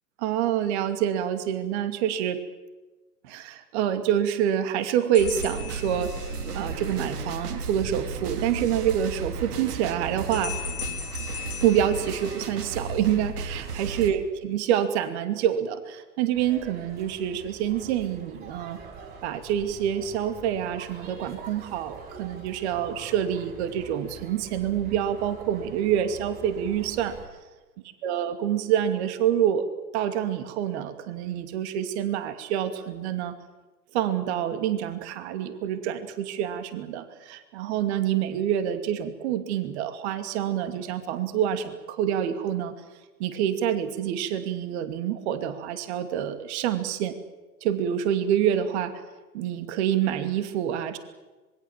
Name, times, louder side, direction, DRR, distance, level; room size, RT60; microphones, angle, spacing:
voice 1, 0.2-2.4 3.2-6.1 6.5-10.5 11.6-18.8 19.2-27.2 28.0-29.7 29.9-33.3 33.9-42.7 43.2-47.2 47.6-49.0 49.3-51.0, right 10 dB, 40° right, 9 dB, 2.6 m, -27 dB
sound 1, 5.1-6.7 10.3-12.8, left 11 dB, 60° left, 3.1 m, -39 dB
sound 2, 5.2-14.1, right 3 dB, 65° right, 3.2 m, -34 dB
sound 3, 16.3-27.3, right 5 dB, 20° right, 6.2 m, -45 dB
26.0 x 21.5 x 7.5 m, 1.2 s
hypercardioid pair, 130°, 49 cm